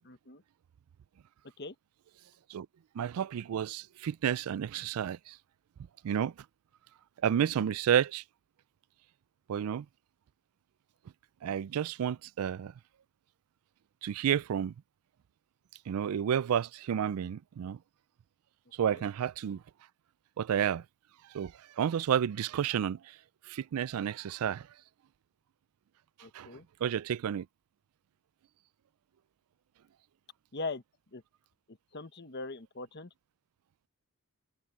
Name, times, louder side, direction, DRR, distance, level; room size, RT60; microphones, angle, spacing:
voice 1, 0.0-0.4 1.6-1.7 18.9-19.0 26.2-26.6 30.5-30.8 31.1-31.2 31.7-33.1, left 3 dB, 50° left, 1.1 m, -41 dB
voice 2, 3.0-5.4 6.0-6.3 7.2-8.2 9.5-9.9 11.4-12.7 14.0-14.7 15.9-17.8 18.8-19.6 20.4-20.8 21.3-23.1 23.5-24.7 26.3-26.5 26.8-27.5, right 9 dB, 85° right, 0.3 m, -31 dB
head